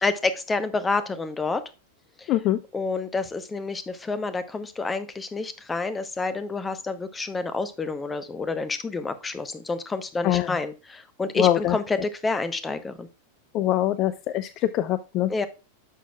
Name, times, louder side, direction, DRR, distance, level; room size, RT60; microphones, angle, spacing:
voice 1, 0.0-1.6 2.2-2.3 2.7-13.1 15.3-15.5, left 3 dB, 15° left, 12 dB, 0.9 m, -28 dB
voice 2, 2.3-2.6 10.2-10.6 11.4-11.8 13.5-15.3, left 13 dB, 35° left, 14 dB, 0.4 m, -23 dB
10.0 x 6.3 x 2.3 m, 0.31 s
figure-of-eight pair, 90°, 0 cm